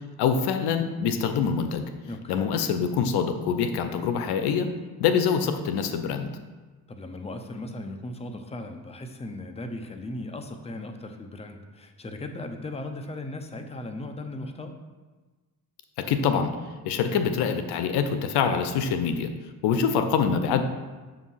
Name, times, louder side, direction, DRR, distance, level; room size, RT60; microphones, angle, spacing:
voice 1, 0.2-1.8 2.3-4.7 5.0-6.3 16.1-16.5 16.9-19.3 19.6-20.7, left 6 dB, 90° left, 8 dB, 0.6 m, -25 dB
voice 2, 2.1-2.5 6.9-14.7, left 2 dB, 15° left, 5 dB, 0.6 m, -37 dB
7.2 x 2.7 x 5.5 m, 1.3 s
cardioid pair, 80°, 38 cm